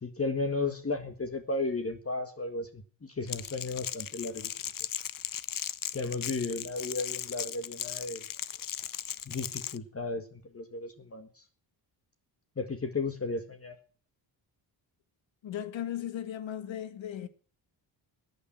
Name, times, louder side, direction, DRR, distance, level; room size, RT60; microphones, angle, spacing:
voice 1, 0.0-4.5 5.9-8.3 9.3-11.4 12.6-13.8, left 3 dB, 30° left, 1.8 m, -34 dB
Crackle, 3.3-9.8, left 10 dB, 45° left, 0.7 m, -37 dB
voice 2, 15.4-17.3, left 10 dB, 70° left, 1.7 m, -36 dB
13.5 x 9.1 x 7.4 m
cardioid pair, 75°, 47 cm